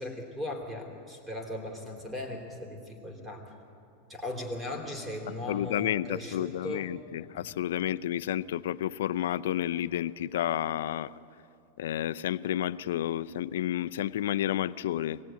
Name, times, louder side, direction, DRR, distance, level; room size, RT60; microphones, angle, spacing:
voice 1, 0.0-3.6 4.1-6.9 7.4-7.5, left 1 dB, 10° right, 2 dB, 3.3 m, -38 dB
voice 2, 5.5-11.1 11.8-15.2, left 12 dB, 80° left, 15 dB, 0.6 m, -31 dB
23.5 x 18.0 x 9.2 m, 2.6 s
supercardioid pair, 150°, 0 cm